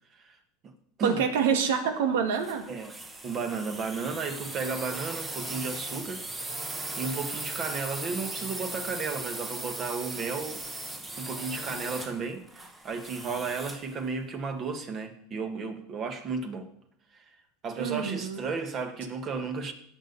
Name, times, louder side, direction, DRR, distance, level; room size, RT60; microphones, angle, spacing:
voice 1, 1.0-2.7 17.8-18.4, right 7 dB, 85° right, 7 dB, 1.8 m, -26 dB
sound 1, 2.3-13.9, right 2 dB, 15° right, 1.3 m, -38 dB
voice 2, 3.2-6.2 6.7-10.6 11.2-16.7 17.1-17.2 17.6-19.7, right 4 dB, 35° right, 6 dB, 1.6 m, -34 dB
17.5 x 7.0 x 4.1 m, 0.73 s
supercardioid pair, 140°, 0 cm